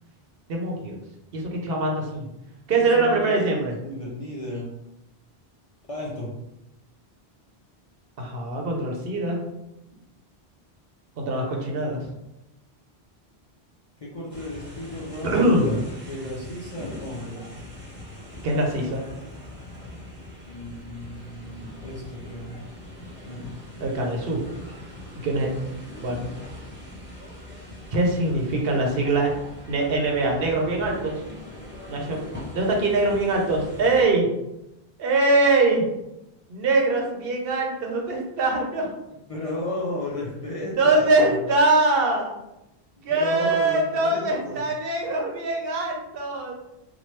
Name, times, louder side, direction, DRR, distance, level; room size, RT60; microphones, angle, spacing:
voice 1, 0.5-1.0 1.3-2.3 2.7-3.8 8.2-9.4 11.2-12.0 15.2-15.8 18.4-19.0 23.8-24.4 25.2-25.5 26.0-26.3 27.9-29.3 29.7-31.2 31.9-32.2 32.5-34.3 35.0-35.9 36.5-38.9 40.8-42.3 43.0-46.5, right 2 dB, 65° right, 1 dB, 0.8 m, -23 dB
voice 2, 2.7-4.7 5.9-6.3 14.0-15.8 16.0-17.5 20.5-22.5 23.2-23.4 25.2-25.7 39.1-41.4 43.0-44.6, left 1 dB, 45° left, -5 dB, 0.5 m, -34 dB
sound 1, 14.3-34.0, left 1 dB, 10° right, 0.8 m, -41 dB
2.9 x 2.2 x 3.1 m, 0.91 s
omnidirectional pair, 1.1 m